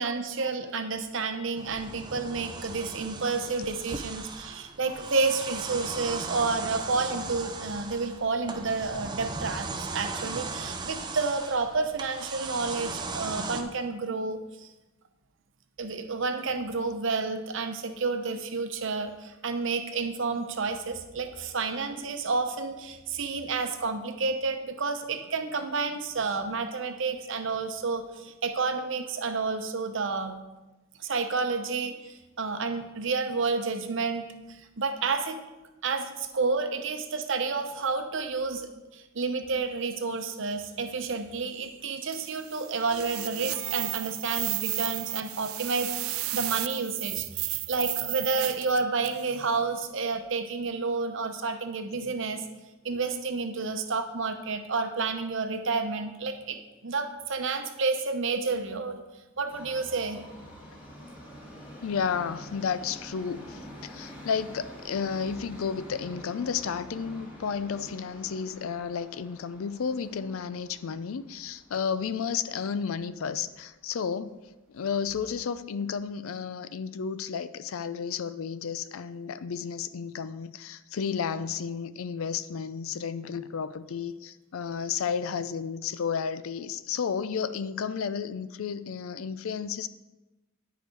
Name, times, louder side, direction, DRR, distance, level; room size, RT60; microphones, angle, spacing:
voice 1, 0.0-14.7 15.8-30.4 31.0-35.4 35.8-52.4 52.8-56.6 56.8-59.0 59.4-60.2, right 4 dB, 65° right, 0.8 m, -30 dB
sound 1, 1.6-13.6, right 3 dB, 20° right, 0.6 m, -37 dB
sound 2, 42.1-49.3, right 18 dB, 85° right, 0.4 m, -33 dB
Subway metro underground, 59.5-73.6 73.9-74.0 74.8-74.9 75.2-75.3 75.9-76.0, equal, 45° left, 2.6 m, -47 dB
voice 2, 61.8-74.4 74.7-89.9, left 6 dB, 85° left, 0.4 m, -32 dB
10.0 x 5.0 x 4.6 m
head